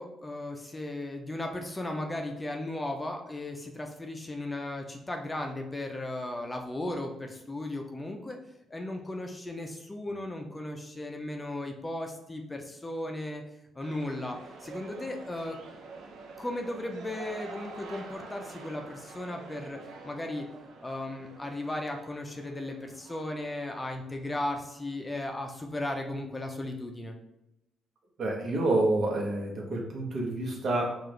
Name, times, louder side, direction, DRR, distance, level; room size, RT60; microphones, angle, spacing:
voice 1, 0.0-8.4 8.7-13.4 13.7-15.6 16.4-19.8 20.0-20.5 20.8-27.2, left 1 dB, 20° left, 3 dB, 0.5 m, -36 dB
sound 1, 13.8-24.7 25.1-25.2, right 3 dB, 80° right, 0.6 m, -47 dB
voice 2, 28.2-31.0, right 2 dB, 55° right, -1 dB, 1.1 m, -28 dB
4.7 x 2.5 x 3.1 m, 0.87 s
cardioid pair, 90°, 0 cm